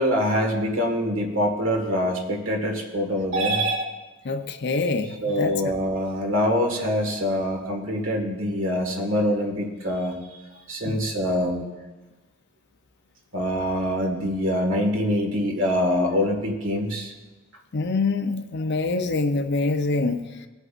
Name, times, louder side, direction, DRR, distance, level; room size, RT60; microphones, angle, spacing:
voice 1, 0.0-3.9 5.2-10.2 10.7-11.7 13.3-17.1, equal, 65° right, 2 dB, 1.8 m, -24 dB
voice 2, 4.2-5.6 5.9-6.0 10.8-11.0 17.7-20.2, left 3 dB, 55° left, 7 dB, 0.7 m, -25 dB
18.5 x 8.0 x 2.5 m, 1.1 s
head